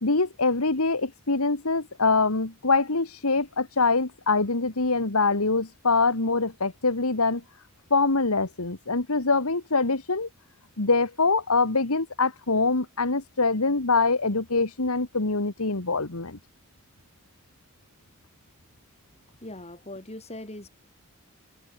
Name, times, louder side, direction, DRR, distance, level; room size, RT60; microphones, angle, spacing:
voice 1, 0.0-7.4 7.9-10.3 10.8-16.4, left 3 dB, 75° left, 1.9 m, -24 dB
voice 2, 19.4-20.7, left 1 dB, 30° left, 7.1 m, -40 dB
head